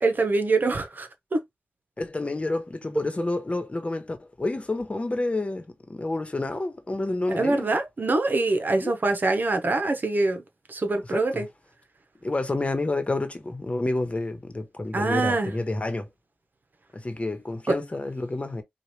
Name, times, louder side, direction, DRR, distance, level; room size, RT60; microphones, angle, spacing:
voice 1, 0.0-1.4 7.3-10.4 10.7-11.5 14.9-15.5 17.7-17.8, right 3 dB, 55° right, 1.1 m, -24 dB
voice 2, 2.0-7.7 8.8-8.9 11.1-11.4 12.2-16.1 16.9-18.6, left 2 dB, 35° left, 1.2 m, -29 dB
4.8 x 2.5 x 3.1 m
cardioid pair, 50°, 4 cm